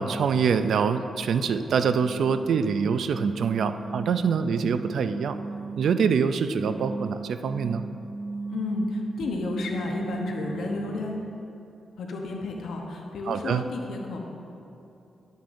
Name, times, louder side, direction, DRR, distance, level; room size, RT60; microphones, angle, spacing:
voice 1, 0.0-5.4 5.8-7.8 13.3-13.6, right 6 dB, 75° right, 11 dB, 0.3 m, -25 dB
sound 1, 1.6-11.3, right 4 dB, 30° right, 0.8 m, -37 dB
voice 2, 8.5-11.2 12.0-14.2, left 3 dB, 80° left, 1 dB, 0.9 m, -32 dB
11.5 x 9.1 x 2.6 m, 2.7 s
cardioid pair, 110°, 0 cm